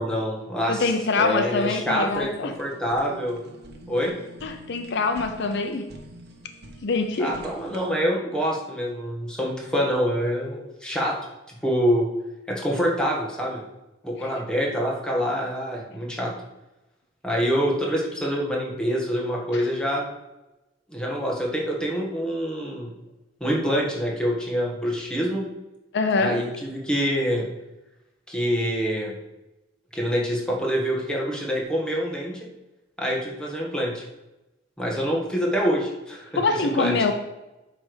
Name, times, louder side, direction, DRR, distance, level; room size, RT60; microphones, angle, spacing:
voice 1, 0.0-0.9 1.2-3.4 3.9-4.1 7.2-11.2 11.6-12.1 12.5-13.6 14.0-16.3 17.2-20.1 20.9-22.9 23.4-25.4 26.2-27.5 28.3-29.1 29.9-32.5 33.0-34.0 34.8-37.0, equal, 5° left, -2 dB, 1.5 m, -26 dB
voice 2, 0.7-2.6 4.4-5.9 6.8-7.4 14.2-14.3 19.5-19.7 25.9-26.5 36.4-37.1, left 3 dB, 65° left, 7 dB, 0.6 m, -24 dB
Fire, 1.6-7.9, right 1 dB, 55° right, 1.2 m, -46 dB
8.6 x 3.4 x 6.3 m, 0.99 s
head